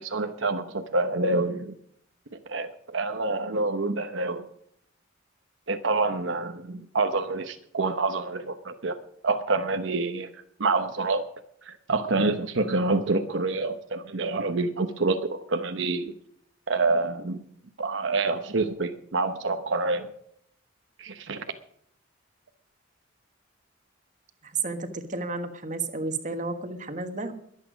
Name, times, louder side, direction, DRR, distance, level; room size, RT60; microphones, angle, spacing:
voice 1, 0.0-1.7 2.5-4.4 5.7-9.0 9.2-11.2 11.6-16.1 16.7-17.4 17.8-20.1 21.0-21.4, right 3 dB, 70° right, 7 dB, 0.9 m, -27 dB
voice 2, 24.4-27.3, right 3 dB, 40° right, 8 dB, 1.5 m, -32 dB
22.0 x 8.5 x 5.1 m, 0.68 s
head